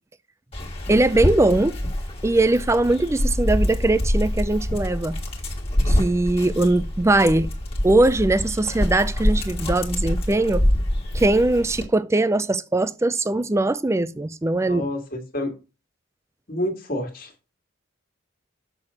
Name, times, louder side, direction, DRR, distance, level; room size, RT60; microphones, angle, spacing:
Dog, 0.5-11.9, left 1 dB, 30° left, 1.6 m, -25 dB
voice 1, 0.9-1.8 2.2-5.2 5.9-7.5 7.8-10.6 11.1-14.9, right 2 dB, 15° right, 0.4 m, -20 dB
voice 2, 14.7-15.5 16.5-17.3, left 1 dB, 45° left, 1.8 m, -28 dB
6.8 x 6.2 x 4.3 m
head